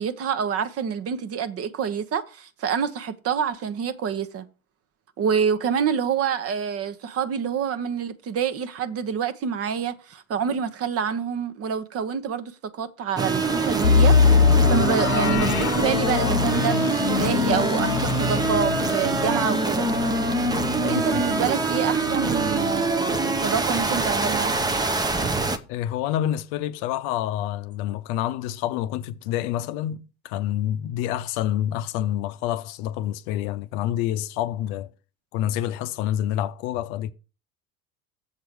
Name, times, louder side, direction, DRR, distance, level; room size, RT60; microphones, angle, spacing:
voice 1, 0.0-4.4 5.2-14.2 14.7-19.9 20.8-24.5, right 7 dB, 35° right, 0.9 m, -27 dB
sound 1, 13.2-25.6, right 3 dB, 10° right, 0.6 m, -24 dB
sound 2, 13.8-23.6 23.9-24.0 24.5-24.8, left 6 dB, 90° left, 0.6 m, -24 dB
voice 2, 20.9-21.2 25.7-34.9 35.3-37.1, left 12 dB, 50° left, 0.7 m, -28 dB
7.4 x 4.5 x 6.8 m
hypercardioid pair, 80°, 43 cm